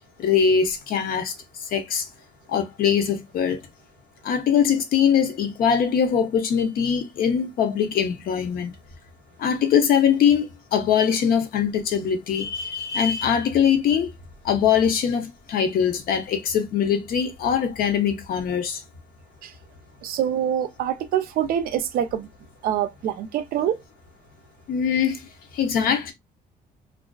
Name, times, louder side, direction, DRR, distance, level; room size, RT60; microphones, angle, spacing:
voice 1, 0.2-1.3 1.7-2.0 2.5-3.6 4.2-8.7 9.4-14.1 14.4-18.8 24.7-25.2 25.5-26.1, left 7 dB, 60° left, 0.7 m, -22 dB
voice 2, 20.0-22.3 22.6-23.8, right 10 dB, 60° right, 0.4 m, -25 dB
2.4 x 2.3 x 2.2 m
cardioid pair, 110°, 17 cm